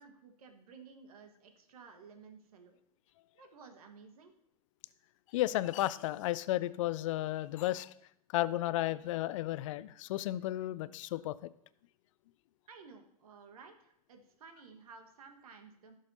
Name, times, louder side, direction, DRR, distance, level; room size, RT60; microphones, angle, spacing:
voice 1, 0.0-2.8 3.3-4.3 12.7-15.9, right 5 dB, 65° right, 6 dB, 1.5 m, -55 dB
voice 2, 5.3-7.9 8.3-11.3, left 15 dB, 55° left, 17 dB, 0.4 m, -33 dB
16.0 x 6.4 x 2.8 m, 0.72 s
figure-of-eight pair, 95°, 20 cm